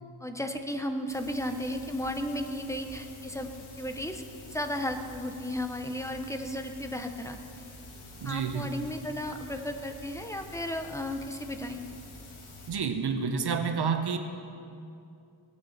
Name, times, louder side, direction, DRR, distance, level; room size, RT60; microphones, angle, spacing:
voice 1, 0.2-3.5 3.8-7.6 8.2-11.9, left 1 dB, 5° left, 5 dB, 0.8 m, -34 dB
sound 1, 1.1-12.7, left 2 dB, 80° left, 2.3 m, -48 dB
voice 2, 8.2-8.7 12.7-14.2, right 6 dB, 55° right, 7 dB, 1.0 m, -29 dB
18.0 x 6.6 x 7.2 m, 2.6 s
wide cardioid pair, 130°, 48 cm